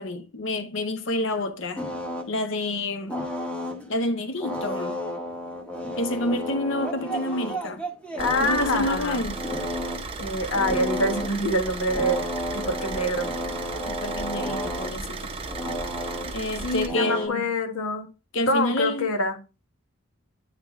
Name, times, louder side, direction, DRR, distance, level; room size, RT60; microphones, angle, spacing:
voice 1, 0.0-1.8 2.2-3.2 3.9-5.0 6.0-7.8 8.4-9.4 13.9-15.3 16.3-17.5 18.3-19.1, left 1 dB, 60° left, 0.7 m, -28 dB
sound 1, 1.8-2.3 3.1-3.9 4.4-10.0 10.4-11.4 11.9-17.3, equal, 5° left, 0.8 m, -32 dB
voice 2, 8.2-9.2 10.2-12.2 12.5-13.3 16.6-18.1 18.5-19.4, left 1 dB, 85° left, 1.4 m, -25 dB
Car / Idling, 8.2-16.9, right 3 dB, 25° right, 0.6 m, -35 dB
9.6 x 3.4 x 3.6 m
head